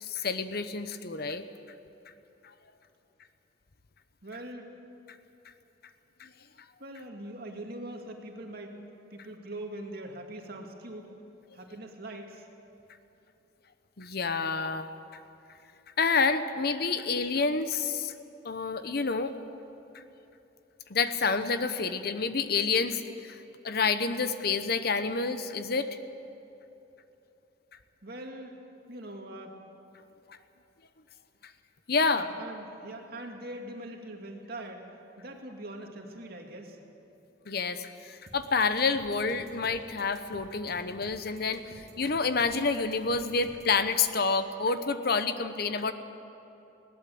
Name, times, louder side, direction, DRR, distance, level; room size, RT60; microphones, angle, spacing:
voice 1, 0.0-1.5 6.2-6.3 14.0-14.9 16.0-18.1 18.4-19.3 19.9-20.0 20.9-25.9 30.3-30.4 31.9-32.3 37.5-45.9, left 4 dB, 55° left, 10 dB, 0.9 m, -28 dB
voice 2, 4.2-4.8 6.8-8.8 9.1-11.2 11.5-12.5 28.0-28.5 28.9-29.6 32.0-34.8 35.2-36.8, right 1 dB, 55° right, 2 dB, 2.3 m, -42 dB
sound 1, 38.3-43.8, right 1 dB, 35° right, 2.9 m, -51 dB
21.0 x 17.5 x 7.8 m, 3.0 s
head